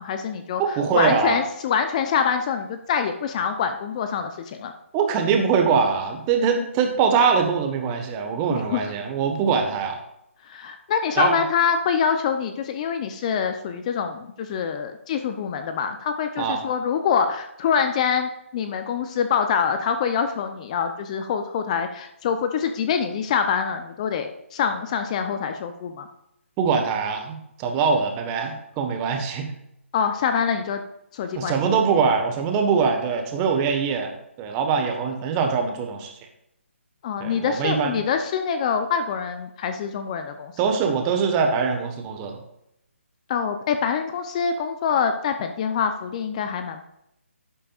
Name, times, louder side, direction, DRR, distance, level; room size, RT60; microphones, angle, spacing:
voice 1, 0.0-4.7 8.5-8.8 10.4-26.1 29.9-30.8 31.1-31.8 37.0-40.5 43.3-46.9, left 7 dB, 30° left, 7 dB, 0.7 m, -25 dB
voice 2, 0.6-1.4 4.9-10.0 11.2-11.4 16.4-16.6 26.6-29.5 31.3-36.1 37.2-38.0 40.6-42.4, right 6 dB, 20° right, 4 dB, 1.3 m, -23 dB
12.5 x 8.7 x 2.5 m, 0.80 s
figure-of-eight pair, 150°, 7 cm